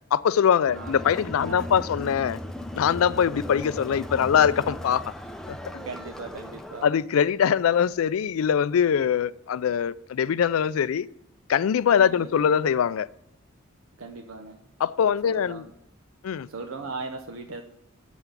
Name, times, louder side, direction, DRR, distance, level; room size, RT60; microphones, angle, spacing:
voice 1, 0.1-2.4 2.7-5.1 5.5-5.6 6.8-11.1 11.5-13.1 14.8-15.6 16.2-16.5, left 8 dB, 85° left, 0.4 m, -22 dB
Crowd, 0.6-6.9, left 1 dB, 5° left, 0.5 m, -37 dB
voice 2, 1.3-1.9 4.1-4.4 5.8-6.9 12.0-12.4 14.0-14.6 15.2-15.7 16.5-17.6, right 3 dB, 85° right, 0.8 m, -39 dB
7.0 x 5.9 x 6.7 m
head